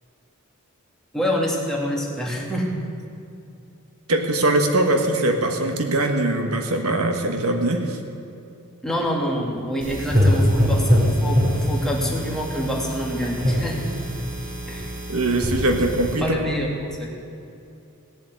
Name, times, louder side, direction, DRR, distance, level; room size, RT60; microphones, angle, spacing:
voice 1, 1.1-2.7 8.8-11.4 11.7-13.9 14.7-14.9 16.2-17.1, equal, ahead, -3 dB, 2.5 m, -26 dB
voice 2, 4.1-8.0 15.1-16.4, right 1 dB, 85° right, 4 dB, 1.6 m, -21 dB
sound 1, 9.8-16.2, equal, 40° right, 3.8 m, -23 dB
17.0 x 7.5 x 9.5 m, 2.6 s
head